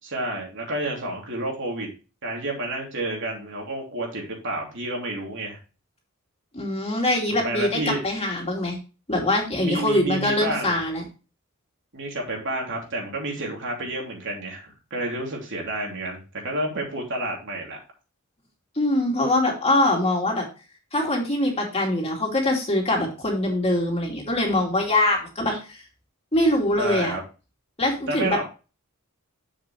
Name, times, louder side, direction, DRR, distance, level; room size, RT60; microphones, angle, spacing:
voice 1, 0.0-1.9 2.2-5.6 7.4-8.0 9.5-10.8 11.9-17.8 25.5-25.6 26.8-27.2 28.1-28.4, right 1 dB, 60° right, 0 dB, 2.9 m, -30 dB
voice 2, 6.5-8.8 9.1-11.0 18.8-20.4 20.9-25.8 26.3-27.2 27.8-28.4, left 1 dB, 30° left, 0 dB, 2.5 m, -23 dB
7.3 x 7.2 x 3.1 m, 0.32 s
head